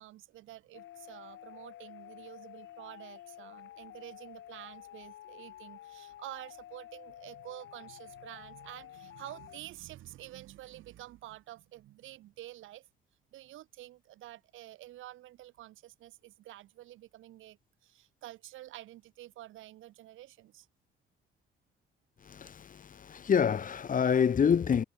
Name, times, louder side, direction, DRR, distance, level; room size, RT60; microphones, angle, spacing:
voice 1, 0.0-12.9 13.3-20.7, right 15 dB, 85° right, 1.3 m, -49 dB
sound 1, 0.7-9.6, left 13 dB, 80° left, 2.6 m, -50 dB
voice 2, 22.2-24.8, left 7 dB, 40° left, 1.2 m, -27 dB
cardioid pair, 90°, 20 cm